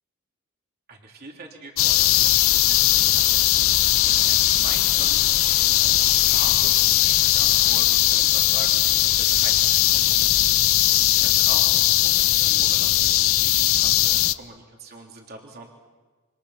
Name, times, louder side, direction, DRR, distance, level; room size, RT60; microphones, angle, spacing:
voice 1, 0.9-10.5 11.1-15.7, right 3 dB, 50° right, 0 dB, 3.6 m, -43 dB
sound 1, 1.8-14.3, left 14 dB, 75° left, 0.7 m, -19 dB
28.5 x 26.0 x 5.9 m, 1.3 s
head